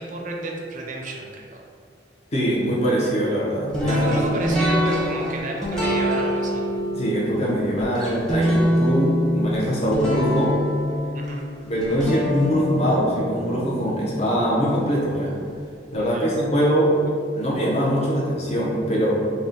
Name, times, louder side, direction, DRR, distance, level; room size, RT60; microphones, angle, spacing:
voice 1, 0.0-1.6 3.9-6.8 11.1-11.4 16.0-16.3, right 2 dB, 45° right, 0 dB, 0.4 m, -31 dB
voice 2, 2.3-4.2 6.9-10.5 11.6-15.3 15.9-16.9 17.3-19.1, equal, 35° left, -5 dB, 0.6 m, -22 dB
sound 1, 3.7-14.8, equal, 5° left, 0.7 m, -25 dB
4.0 x 2.1 x 3.8 m, 2.2 s
head